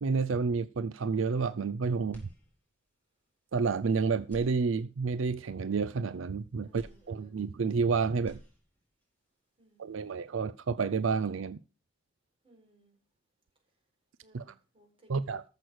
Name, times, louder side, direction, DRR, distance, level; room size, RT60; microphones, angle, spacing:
voice 1, 0.0-2.2 3.5-8.4 9.8-11.6 14.3-14.5 15.1-15.4, right 5 dB, 70° right, 0.5 m, -30 dB
sound 1, 2.1-3.0 3.4-3.5 4.2-5.2 6.7-7.8 8.1-9.1, equal, 10° left, 5.0 m, -54 dB
voice 2, 6.6-7.6 9.6-10.1 12.4-13.0 14.2-15.4, right 1 dB, 25° right, 4.3 m, -62 dB
14.0 x 6.6 x 6.3 m
head